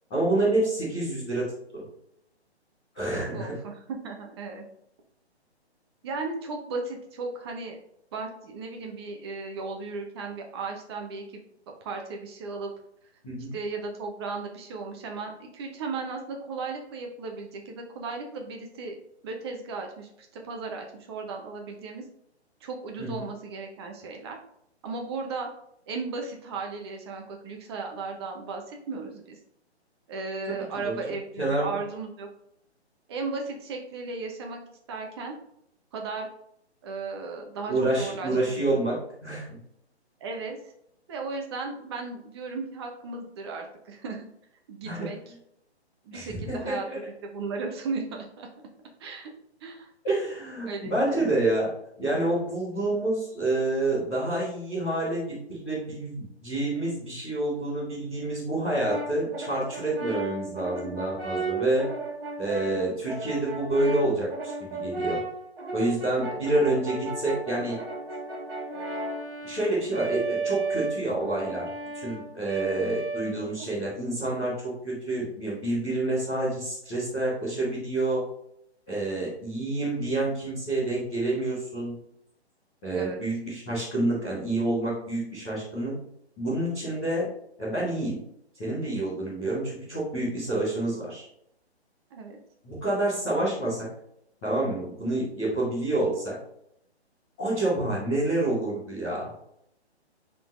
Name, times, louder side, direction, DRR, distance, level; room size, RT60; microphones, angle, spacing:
voice 1, 0.1-1.5 1.7-1.8 2.9-3.5 13.2-13.5 23.0-23.2 30.5-31.0 31.4-31.7 37.7-39.0 39.2-39.6 44.8-45.1 46.1-47.0 50.0-51.7 52.0-61.9 62.4-65.2 65.7-67.8 69.4-71.6 71.9-78.2 78.9-81.9 82.8-85.9 86.4-87.3 87.6-88.2 88.6-91.2 92.6-93.9 94.4-96.3 97.4-99.3, right 2 dB, 5° left, -15 dB, 0.4 m, -28 dB
voice 2, 3.3-4.6 6.0-7.8 8.1-11.4 11.8-12.7 13.5-18.9 19.2-22.0 22.6-24.4 24.8-25.5 25.9-29.4 30.1-32.3 33.1-34.6 34.9-35.3 35.9-36.3 36.8-38.8 40.2-40.6 41.1-44.3 44.7-45.3 46.0-46.9 47.2-48.5 49.0-49.3 49.6-49.9 50.7-51.3 66.2-66.4 82.9-83.2 92.1-92.4, right 4 dB, 25° right, 2 dB, 0.8 m, -35 dB
Brass instrument, 58.9-73.7, right 3 dB, 60° right, 1.4 m, -34 dB
10.0 x 3.8 x 2.5 m, 0.76 s
figure-of-eight pair, 140°, 33 cm